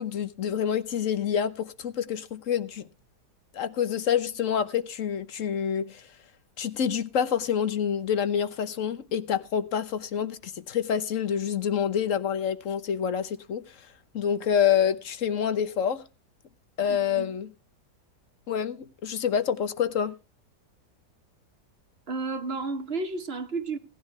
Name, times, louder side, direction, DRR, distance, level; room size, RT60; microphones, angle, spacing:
voice 1, 0.0-2.9 3.5-6.0 6.6-13.6 14.1-16.0 16.8-17.5 18.5-20.1, left 8 dB, 55° left, 1.2 m, -27 dB
voice 2, 16.9-17.3 22.1-23.8, right 3 dB, 40° right, 1.2 m, -32 dB
17.5 x 10.5 x 3.2 m
omnidirectional pair, 1.8 m